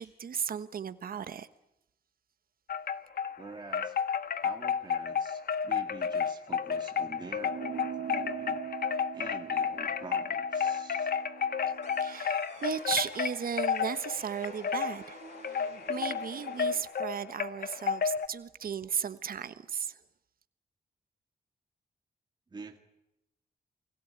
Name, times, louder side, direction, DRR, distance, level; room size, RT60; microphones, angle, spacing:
voice 1, 0.0-1.5 12.0-15.2 15.5-20.0, right 7 dB, 65° right, 1.3 m, -35 dB
Wind chime, 2.7-3.4 3.7-18.3, left 7 dB, 75° left, 1.4 m, -32 dB
voice 2, 3.4-4.0 4.4-8.6 9.1-11.1 22.5-22.8, right 3 dB, 25° right, 1.9 m, -46 dB
sound 1, 7.4-12.2, right 9 dB, 90° right, 1.1 m, -42 dB
sound 2, 11.8-16.8, right 5 dB, 45° right, 3.0 m, -51 dB
29.5 x 20.5 x 8.9 m
wide cardioid pair, 175°, 16 cm